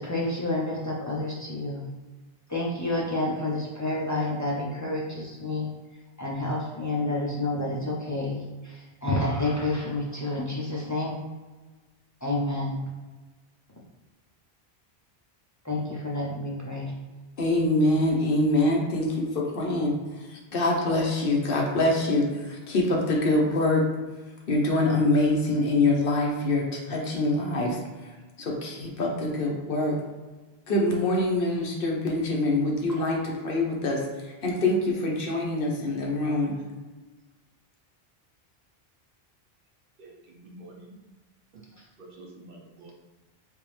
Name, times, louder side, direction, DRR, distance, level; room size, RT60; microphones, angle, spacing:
voice 1, 0.0-1.9 2.5-5.7 6.2-11.2 12.2-12.8 15.6-16.9 32.9-33.0 41.8-41.9, left 2 dB, 20° left, -5 dB, 0.6 m, -29 dB
voice 2, 17.4-19.9 20.5-23.8 24.5-27.8 28.4-30.0 30.7-34.0 34.4-36.6, left 2 dB, 65° left, -1 dB, 0.9 m, -24 dB
voice 3, 40.0-41.0 41.5-41.6 42.0-42.9, right 2 dB, 60° right, -2 dB, 0.9 m, -48 dB
3.5 x 3.0 x 3.2 m, 1.2 s
omnidirectional pair, 1.0 m